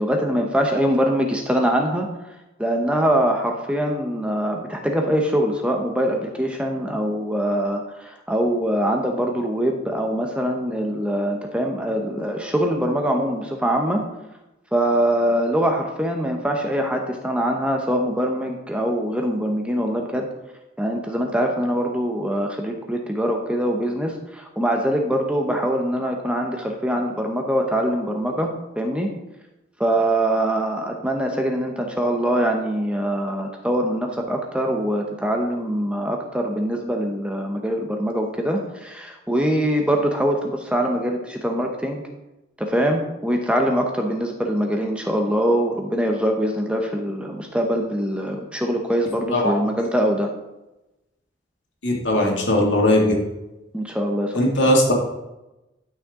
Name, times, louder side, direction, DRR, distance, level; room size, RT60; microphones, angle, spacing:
voice 1, 0.0-2.1 2.6-14.0 14.7-20.3 20.8-29.1 29.8-42.0 42.6-50.3 53.7-54.5, equal, 5° right, 2 dB, 0.8 m, -23 dB
voice 2, 51.8-53.1 54.3-54.9, left 1 dB, 75° left, -1 dB, 2.2 m, -18 dB
11.5 x 6.3 x 3.7 m, 0.97 s
head